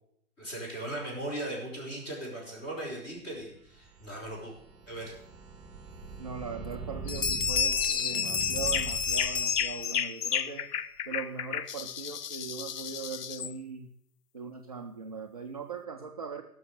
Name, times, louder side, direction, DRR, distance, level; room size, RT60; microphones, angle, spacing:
voice 1, 0.4-4.5 4.9-5.1, right 1 dB, 20° left, -3 dB, 4.6 m, -38 dB
sound 1, 3.5-9.8, right 4 dB, 5° right, 1.6 m, -42 dB
Bell, 6.0-6.1 6.6-6.8 7.1-10.2, left 6 dB, 55° left, 1.2 m, -30 dB
voice 2, 6.2-10.7 11.1-13.9 14.3-16.4, right 6 dB, 25° right, 2 dB, 0.4 m, -40 dB
sound 2, 7.1-7.4 7.8-8.2 8.6-13.5, left 8 dB, 80° left, 0.7 m, -34 dB
15.5 x 6.3 x 6.4 m, 0.71 s
hypercardioid pair, 145°, 46 cm